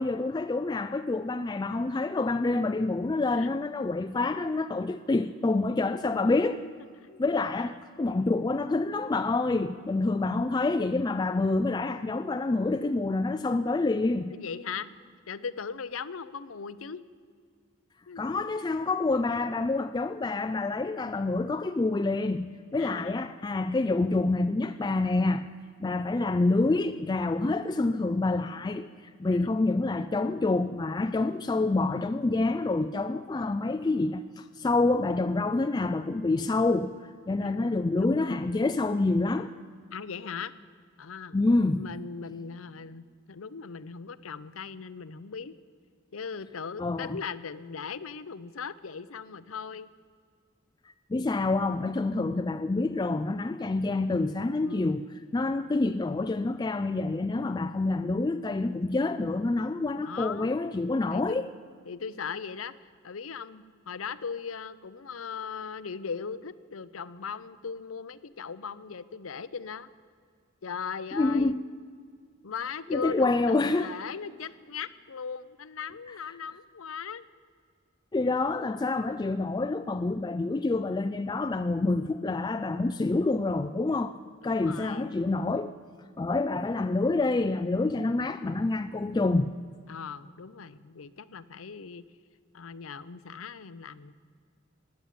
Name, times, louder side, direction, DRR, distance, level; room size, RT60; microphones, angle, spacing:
voice 1, 0.0-6.6 7.2-14.3 18.2-25.5 25.8-39.5 41.3-41.9 46.8-47.2 51.1-55.1 55.3-61.5 71.1-71.6 72.9-73.9 78.1-84.1 84.4-85.7 86.2-89.6, left 2 dB, 20° left, 0.3 m, -27 dB
voice 2, 14.3-14.9 15.3-17.0 18.1-18.3 22.8-23.3 29.3-29.5 37.4-38.4 39.9-40.5 41.0-45.6 46.1-49.9 54.6-55.0 59.9-60.6 61.1-61.4 61.9-62.7 63.0-69.9 70.6-71.5 72.4-77.2 84.4-85.1 89.9-92.0 92.5-94.1, left 6 dB, 90° left, 0.7 m, -39 dB
15.5 x 9.7 x 9.3 m
head